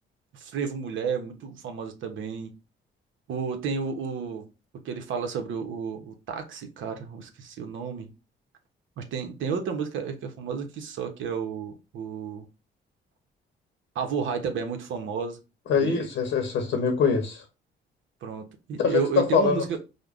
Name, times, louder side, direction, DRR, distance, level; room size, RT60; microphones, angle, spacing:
voice 1, 0.3-2.5 3.3-4.5 4.7-8.1 9.0-12.5 13.9-15.4 15.8-16.1 18.2-19.8, right 6 dB, 75° right, 0.8 m, -32 dB
voice 2, 15.7-17.4 18.8-19.8, left 6 dB, 70° left, 0.8 m, -24 dB
5.0 x 2.2 x 2.4 m
cardioid pair, 90°, 20 cm